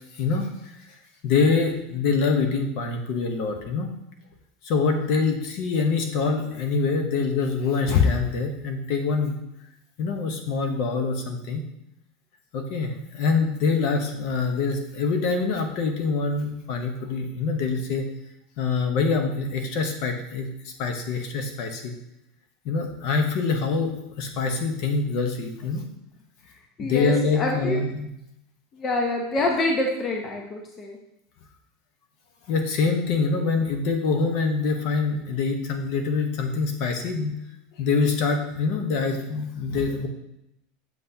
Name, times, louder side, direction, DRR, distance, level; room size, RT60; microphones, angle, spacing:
voice 1, 0.2-0.5 1.2-3.9 4.6-9.3 10.0-11.6 12.5-18.0 18.6-20.5 20.8-21.9 22.6-25.8 26.8-28.1 32.5-37.3 37.8-40.1, left 4 dB, 50° left, 5 dB, 0.9 m, -25 dB
voice 2, 26.8-27.8 28.8-31.0, left 2 dB, 20° left, 1 dB, 0.7 m, -26 dB
7.4 x 5.7 x 2.8 m, 0.80 s
supercardioid pair, 165°, 0 cm